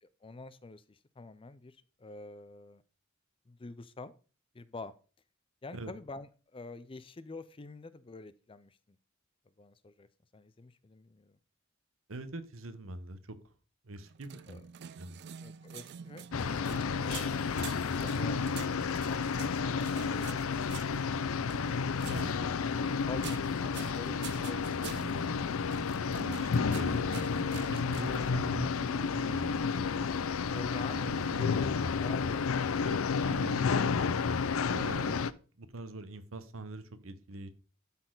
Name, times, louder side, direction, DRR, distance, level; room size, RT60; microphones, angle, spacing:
voice 1, 0.0-2.8 3.5-4.1 4.5-4.9 5.6-9.0 9.6-10.1 10.3-11.4 14.5-14.6 15.4-17.4 18.0-18.4 19.0-20.4 22.8-25.1 30.5-32.9, left 3 dB, 25° left, 15 dB, 0.5 m, -47 dB
voice 2, 12.1-13.5 13.8-14.6 15.0-15.2 22.1-22.3 26.1-30.2 30.9-31.6 32.9-34.0 34.7-35.2 35.6-37.5, right 2 dB, 75° right, 11 dB, 0.9 m, -43 dB
guitarra desafinada, 14.0-28.2, right 8 dB, 55° right, 0.4 m, -47 dB
sound 1, 16.3-35.3, left 5 dB, 85° left, 0.5 m, -31 dB
12.0 x 4.2 x 3.9 m, 0.37 s
head